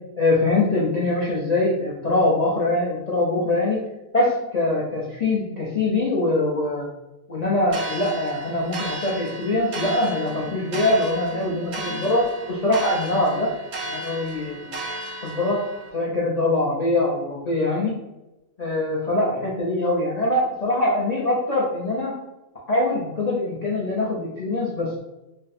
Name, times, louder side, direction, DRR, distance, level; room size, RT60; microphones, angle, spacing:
voice 1, 0.2-3.8 4.1-6.9 7.3-13.5 13.8-15.0 15.2-15.6 15.9-18.0 18.6-22.2 22.7-25.0, left 2 dB, 45° left, -6 dB, 0.6 m, -23 dB
sound 1, 7.7-15.9, right 2 dB, 50° right, 0.5 m, -34 dB
2.6 x 2.2 x 4.0 m, 0.98 s
omnidirectional pair, 1.3 m